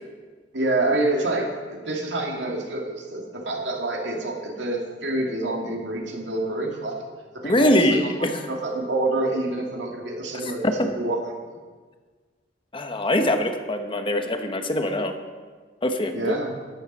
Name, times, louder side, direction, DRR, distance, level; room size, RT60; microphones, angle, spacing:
voice 1, 0.5-6.9 7.4-8.1 8.5-10.6 10.9-11.2 16.1-16.5, right 2 dB, 80° right, 0 dB, 2.3 m, -27 dB
voice 2, 7.4-8.4 10.6-10.9 12.7-15.1 15.8-16.3, left 1 dB, 30° left, 6 dB, 1.0 m, -23 dB
12.5 x 8.9 x 5.4 m, 1.5 s
head